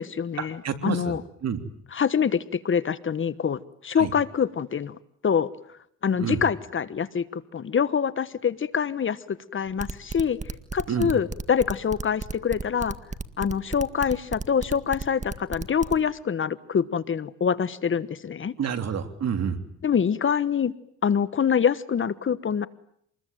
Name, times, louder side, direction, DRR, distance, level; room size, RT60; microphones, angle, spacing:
voice 1, 0.0-1.2 1.9-5.0 5.2-5.5 6.0-10.4 10.7-13.0 13.4-18.5 19.8-20.7 21.0-22.7, left 7 dB, 40° left, 16 dB, 1.3 m, -25 dB
voice 2, 0.6-1.6 3.9-4.1 6.2-6.4 10.9-11.1 18.6-19.6, right 7 dB, 60° right, 8 dB, 3.3 m, -29 dB
sound 1, 9.7-16.0, right 4 dB, 25° right, 1.9 m, -34 dB
27.0 x 21.0 x 9.2 m, 0.69 s
cardioid pair, 90°, 30 cm